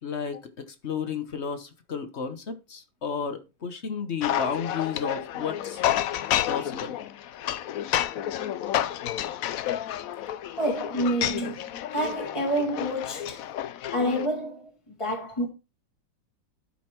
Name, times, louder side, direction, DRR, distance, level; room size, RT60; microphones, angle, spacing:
voice 1, 0.0-5.8 6.5-7.0, left 6 dB, 40° left, 1.1 m, -32 dB
sound 1, 4.2-14.3, left 11 dB, 75° left, 0.8 m, -30 dB
voice 2, 10.6-13.4 13.9-14.7 15.0-15.5, equal, 15° left, 1.6 m, -28 dB
12.0 x 5.3 x 4.4 m
omnidirectional pair, 2.1 m